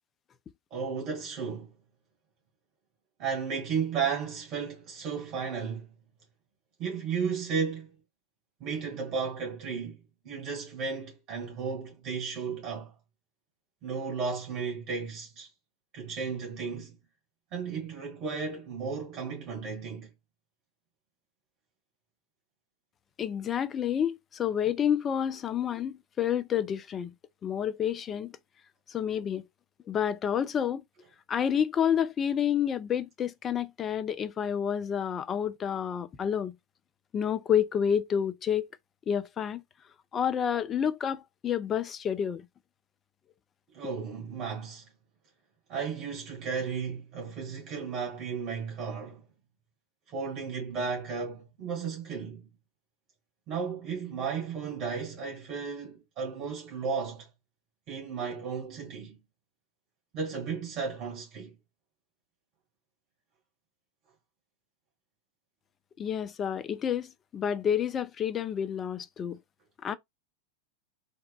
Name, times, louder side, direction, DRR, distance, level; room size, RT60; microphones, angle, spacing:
voice 1, 0.7-1.7 3.2-5.9 6.8-7.9 8.6-10.0 10.2-12.9 13.8-15.5 15.9-17.0 17.5-20.1 43.7-44.8 45.7-49.2 50.1-52.5 53.5-57.3 57.9-59.2 60.1-61.5, right 5 dB, 35° right, 1.7 m, -34 dB
voice 2, 23.2-27.1 27.4-28.3 28.9-29.4 29.9-30.8 31.3-36.5 37.1-38.7 39.1-39.6 40.1-42.4 66.0-69.4 69.8-69.9, left 8 dB, 25° left, 0.3 m, -29 dB
3.3 x 2.8 x 2.2 m
figure-of-eight pair, 90°, 0 cm